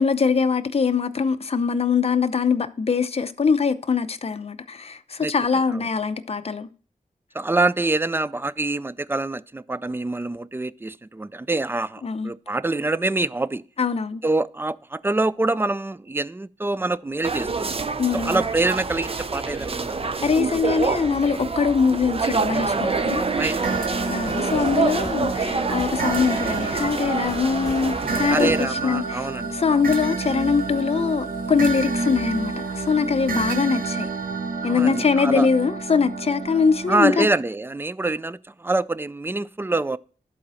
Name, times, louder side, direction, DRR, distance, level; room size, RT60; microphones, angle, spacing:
voice 1, 0.0-6.7 12.0-12.3 13.8-14.2 18.0-18.4 20.2-23.2 24.1-34.1 34.6-37.3, left 5 dB, 45° left, 0.7 m, -22 dB
voice 2, 5.2-5.8 7.3-13.6 14.2-17.8 18.1-19.9 23.4-24.1 28.3-29.9 34.6-35.5 36.9-40.0, right 2 dB, 15° right, 0.4 m, -25 dB
sound 1, 17.2-28.6, right 4 dB, 40° right, 0.7 m, -27 dB
sound 2, 22.8-37.3, right 4 dB, 85° right, 1.0 m, -29 dB
sound 3, 23.6-28.6, left 1 dB, 25° left, 1.2 m, -38 dB
11.5 x 4.2 x 6.2 m
wide cardioid pair, 70°, 14 cm